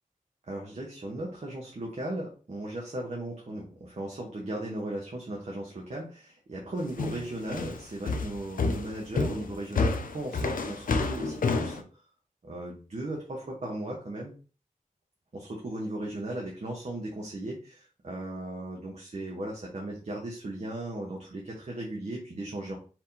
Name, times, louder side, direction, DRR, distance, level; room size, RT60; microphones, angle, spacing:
voice 1, 0.5-12.0 12.4-14.3 15.3-22.8, right 1 dB, 50° right, -2 dB, 1.2 m, -37 dB
Walking up wooden stairs in cement hallway, 7.0-11.8, left 3 dB, 75° left, 0.6 m, -29 dB
4.5 x 3.6 x 2.8 m, 0.36 s
wide cardioid pair, 80°, 14 cm